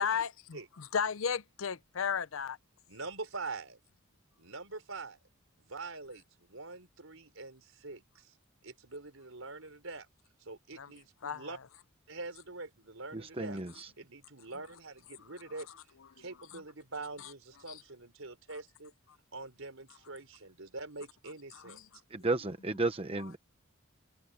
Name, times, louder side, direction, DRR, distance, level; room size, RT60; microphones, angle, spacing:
voice 1, 0.0-2.6 10.8-10.9 11.2-11.6 15.3-15.4 15.7-15.8 16.2-16.6 17.2-17.3 17.7-17.8 21.5-21.9, left 7 dB, 70° left, 0.6 m, -35 dB
voice 2, 2.9-3.8 4.4-5.2 5.6-8.3 8.6-10.1 10.4-11.6 12.1-13.6 14.0-15.7 16.2-18.9 19.3-21.8, right 3 dB, 70° right, 4.6 m, -44 dB
voice 3, 13.1-13.9 22.1-23.4, right 2 dB, 25° right, 0.9 m, -33 dB
open air
head